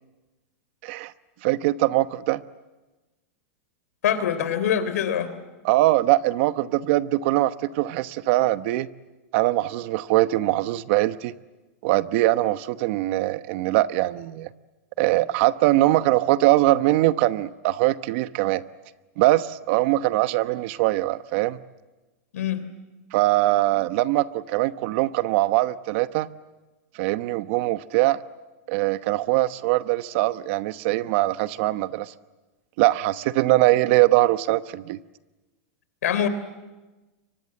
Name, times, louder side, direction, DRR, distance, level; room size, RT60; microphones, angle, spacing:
voice 1, 1.4-2.4 5.6-8.9 9.3-11.3 11.8-14.5 15.0-18.6 19.2-21.6 23.1-26.3 27.0-28.2 28.7-32.1 32.8-35.0, right 17 dB, 50° right, 13 dB, 1.0 m, -22 dB
voice 2, 4.0-5.3 22.3-22.6 36.0-36.3, left 9 dB, 85° left, 12 dB, 3.4 m, -24 dB
30.0 x 24.5 x 7.7 m, 1.2 s
supercardioid pair, 145°, 8 cm